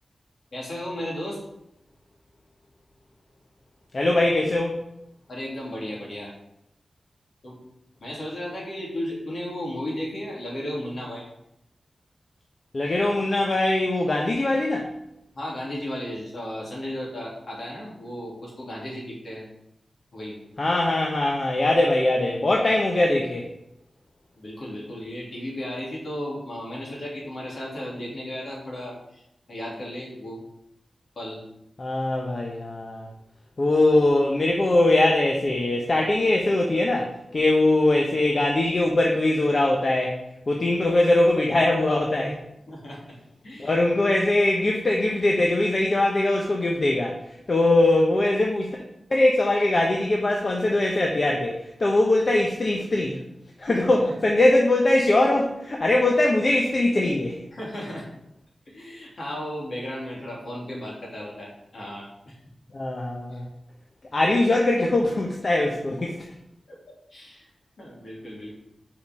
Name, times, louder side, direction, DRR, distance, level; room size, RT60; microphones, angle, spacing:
voice 1, 0.5-1.4 5.3-6.3 7.4-7.6 8.0-11.2 15.3-19.4 20.1-20.4 24.4-29.2 29.5-30.4 31.2-31.4 42.7-43.0 43.4-43.8 53.6-54.1 57.5-58.1 58.7-62.4 63.3-63.4 66.7-66.8 67.1-67.5 67.8-68.6, left 1 dB, 65° left, -5 dB, 2.9 m, -34 dB
voice 2, 3.9-4.8 12.7-14.9 20.6-23.5 31.8-33.1 33.6-40.2 40.5-42.4 43.6-47.2 47.5-48.8 49.1-53.2 53.6-57.4 62.7-63.5 64.1-66.2, left 2 dB, 50° left, 0 dB, 0.9 m, -21 dB
5.2 x 5.1 x 5.3 m, 0.82 s
wide cardioid pair, 70°, 0 cm